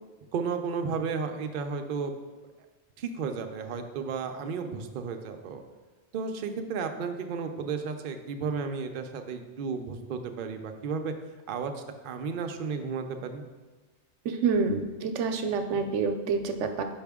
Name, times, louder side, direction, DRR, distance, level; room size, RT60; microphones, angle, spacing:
voice 1, 0.3-2.1 3.0-5.6 6.1-11.1 11.5-13.4, right 5 dB, 60° right, 5 dB, 0.6 m, -33 dB
voice 2, 14.2-16.8, right 5 dB, 85° right, 7 dB, 0.9 m, -27 dB
5.5 x 4.9 x 3.5 m, 1.3 s
omnidirectional pair, 1.2 m